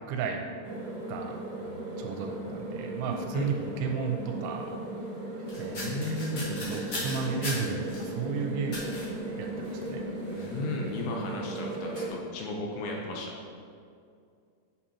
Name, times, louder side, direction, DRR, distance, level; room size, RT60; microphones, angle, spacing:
voice 1, 0.1-0.4 1.1-4.8 5.6-6.2 6.5-9.0 9.4-10.1, right 5 dB, 85° right, 3 dB, 2.9 m, -34 dB
sound 1, 0.6-12.1, right 2 dB, 45° right, 2.1 m, -37 dB
voice 2, 3.3-3.9 5.7-6.6 10.4-13.4, left 2 dB, 75° left, 0 dB, 3.0 m, -35 dB
sound 2, 5.5-8.1 8.7-9.1 9.6-9.9 10.2-10.5, left 1 dB, 50° left, 1.8 m, -38 dB
8.6 x 7.7 x 2.8 m, 2.3 s
omnidirectional pair, 5.6 m